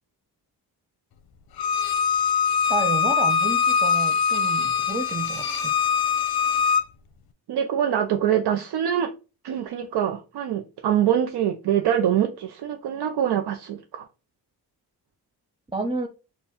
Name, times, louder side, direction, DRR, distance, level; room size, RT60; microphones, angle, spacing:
Bowed string instrument, 1.6-6.8, left 6 dB, 65° left, 0.6 m, -22 dB
voice 1, 2.7-5.7 15.7-16.1, right 3 dB, 15° right, 0.4 m, -30 dB
voice 2, 7.5-9.1 9.4-14.1, right 9 dB, 80° right, 0.6 m, -24 dB
4.2 x 2.3 x 3.5 m
wide cardioid pair, 120°, 39 cm